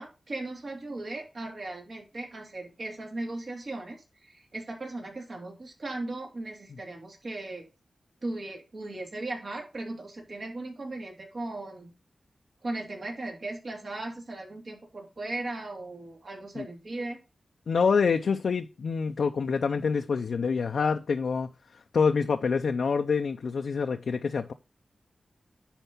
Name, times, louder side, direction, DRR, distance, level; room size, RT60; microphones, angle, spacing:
voice 1, 0.0-7.6 8.2-11.9 12.6-17.2, right 2 dB, 55° right, 3.1 m, -37 dB
voice 2, 17.7-24.5, left 5 dB, 80° left, 0.6 m, -26 dB
10.0 x 4.5 x 5.4 m
wide cardioid pair, 90°, 0 cm